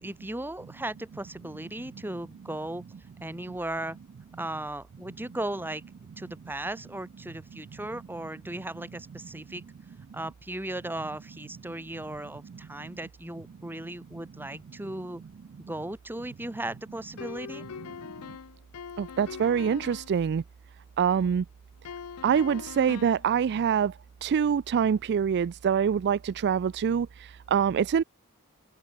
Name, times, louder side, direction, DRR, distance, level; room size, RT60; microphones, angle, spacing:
voice 1, 0.0-2.8 3.2-4.0 4.4-5.8 6.2-9.6 10.1-15.2 15.7-17.6, right 1 dB, 10° right, 1.7 m, -36 dB
sound 1, 17.2-20.2 21.8-23.3, left 6 dB, 75° left, 0.6 m, -41 dB
voice 2, 19.0-20.4 21.0-21.4 22.2-23.9 24.2-28.0, right 7 dB, 50° right, 0.3 m, -25 dB
open air
head